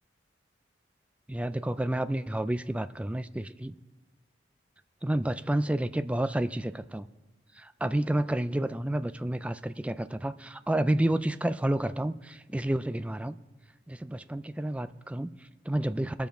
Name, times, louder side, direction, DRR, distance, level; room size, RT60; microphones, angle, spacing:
voice 1, 1.3-3.7 5.0-7.1 7.5-13.4 13.9-16.3, right 1 dB, 5° right, 13 dB, 0.3 m, -30 dB
21.0 x 7.2 x 4.5 m, 1.2 s
head